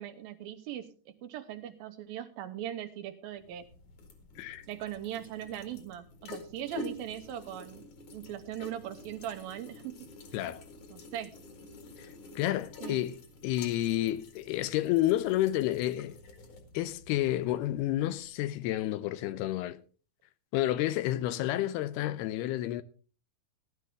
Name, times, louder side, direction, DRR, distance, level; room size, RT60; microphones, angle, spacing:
voice 1, 0.0-3.7 4.7-7.8 8.1-10.1 10.9-11.3 12.8-13.1, right 11 dB, 75° right, 2.6 m, -40 dB
sound 1, 3.4-18.4, left 2 dB, 55° left, 3.1 m, -49 dB
voice 2, 12.0-16.2 16.7-19.8 20.5-22.8, left 14 dB, 90° left, 2.8 m, -30 dB
16.0 x 11.5 x 3.6 m
omnidirectional pair, 4.5 m